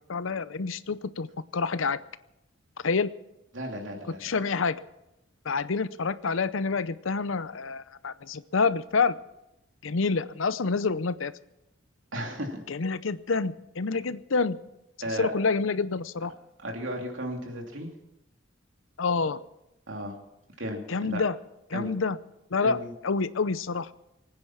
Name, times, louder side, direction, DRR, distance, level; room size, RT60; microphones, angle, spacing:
voice 1, 0.1-1.3 1.5-2.0 2.8-3.1 4.2-4.8 5.4-9.1 9.8-11.3 12.7-14.6 15.2-16.3 19.0-19.4 20.9-21.3 21.7-22.2 22.5-22.8 23.0-23.9, left 4 dB, 80° left, 15 dB, 0.7 m, -27 dB
voice 2, 3.5-4.3 12.1-12.6 15.0-15.3 16.6-17.9 19.9-20.2 20.6-21.2 21.7-21.9 22.6-22.9, equal, 70° right, 2 dB, 2.8 m, -34 dB
24.0 x 9.7 x 5.9 m, 0.90 s
head